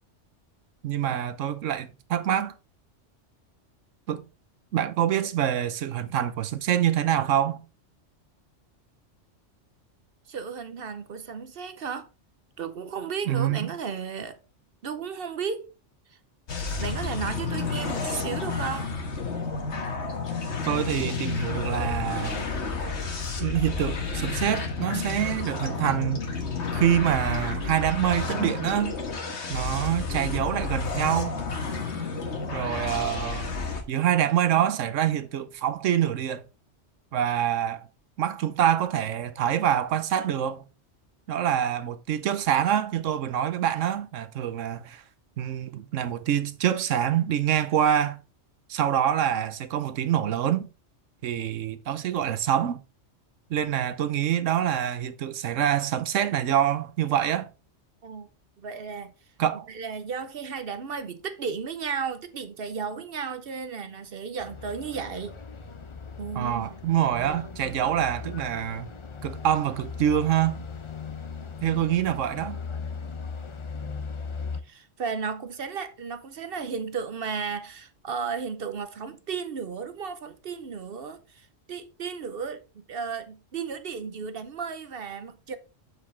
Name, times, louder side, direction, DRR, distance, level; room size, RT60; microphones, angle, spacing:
voice 1, 0.8-2.5 4.1-4.2 4.7-7.6 13.3-13.7 20.7-22.4 23.4-26.3 26.7-29.0 29.5-31.4 32.5-33.6 33.9-36.4 37.1-37.9 38.2-40.7 41.3-45.0 45.4-48.2 48.7-50.7 51.2-52.8 53.5-57.5 59.4-59.7 66.3-68.9 69.2-70.6 71.6-72.6, right 10 dB, 85° right, 1.1 m, -26 dB
voice 2, 10.3-12.1 12.6-14.4 14.8-15.7 16.1-16.2 16.8-18.9 58.0-58.3 58.6-59.1 59.7-65.4 66.2-66.7 74.6-85.6, right 6 dB, 55° right, 0.9 m, -34 dB
sound 1, 16.5-33.8, left 4 dB, 65° left, 1.6 m, -31 dB
sound 2, 64.4-74.6, left 5 dB, 35° left, 0.5 m, -38 dB
7.1 x 6.6 x 3.2 m
omnidirectional pair, 1.3 m